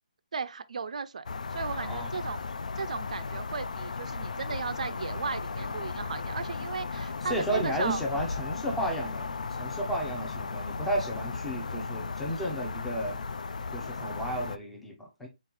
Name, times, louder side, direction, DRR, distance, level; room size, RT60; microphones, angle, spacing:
voice 1, 0.3-1.2 1.5-2.5 2.8-8.0, right 5 dB, 65° right, 0.4 m, -35 dB
sound 1, 1.3-14.6, left 4 dB, 70° left, 0.4 m, -36 dB
voice 2, 1.7-2.1 7.3-13.2 13.7-15.3, right 1 dB, ahead, 0.5 m, -33 dB
3.8 x 3.7 x 2.9 m
hypercardioid pair, 170°, 4 cm